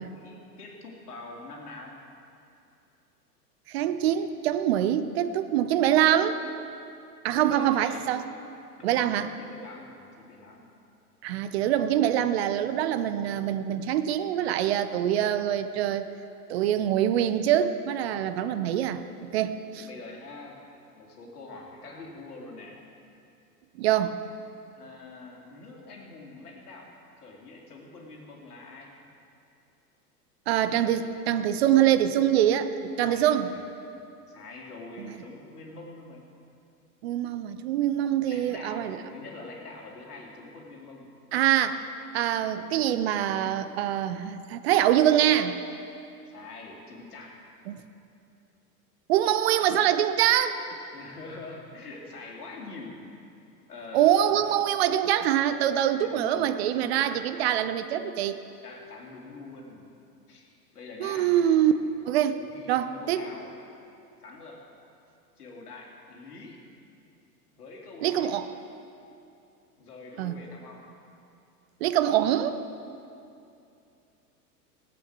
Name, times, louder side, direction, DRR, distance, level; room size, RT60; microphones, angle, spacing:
voice 1, 0.0-2.0 7.3-8.0 8.8-10.7 19.7-20.6 21.0-22.8 24.7-26.9 27.2-29.0 33.0-33.6 34.3-36.3 38.2-41.1 46.3-47.4 49.6-50.2 50.9-53.1 53.7-54.5 55.9-57.2 58.6-59.8 60.3-60.5 60.7-61.4 62.4-63.6 64.2-64.6 65.4-66.6 67.5-68.3 69.8-70.9, left 3 dB, 65° left, 0 dB, 2.6 m, -45 dB
voice 2, 3.7-6.4 7.2-8.2 8.8-9.3 11.2-16.1 16.5-19.0 19.3-19.9 23.8-24.2 30.5-33.5 35.0-35.1 37.0-39.0 41.3-41.9 42.1-45.6 49.1-50.6 53.9-58.4 61.0-61.7 62.1-62.4 62.7-63.3 68.0-68.5 70.2-70.3 71.8-72.6, right 11 dB, 40° right, 11 dB, 0.7 m, -24 dB
17.5 x 8.4 x 6.1 m, 2.6 s
figure-of-eight pair, 95°, 48 cm